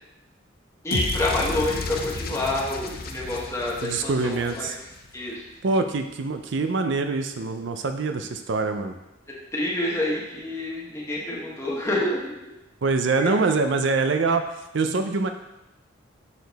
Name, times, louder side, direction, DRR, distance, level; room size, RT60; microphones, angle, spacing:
voice 1, 0.8-4.7 5.1-5.4 9.5-12.5 13.2-13.3, left 1 dB, 15° left, -4 dB, 1.2 m, -28 dB
sound 1, 0.9-5.1, left 3 dB, 50° left, 0.6 m, -32 dB
voice 2, 3.8-4.8 5.6-9.0 12.8-14.4 14.7-15.3, right 3 dB, 65° right, 7 dB, 0.5 m, -24 dB
6.7 x 4.2 x 4.0 m, 0.94 s
head